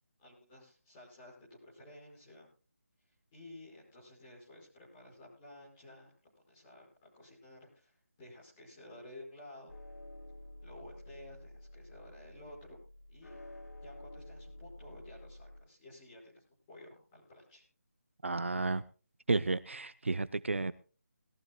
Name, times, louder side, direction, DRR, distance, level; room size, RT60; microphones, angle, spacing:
voice 1, 0.2-2.5 3.3-6.1 6.5-9.7 10.6-12.8 13.1-13.4 13.8-17.6, left 1 dB, 10° left, -7 dB, 5.6 m, -53 dB
sound 1, 9.7-15.6, left 1 dB, 70° left, 6.9 m, -51 dB
voice 2, 18.2-18.8 19.3-20.7, right 3 dB, 50° right, 15 dB, 0.6 m, -32 dB
21.0 x 14.5 x 2.3 m, 0.35 s
figure-of-eight pair, 180°, 8 cm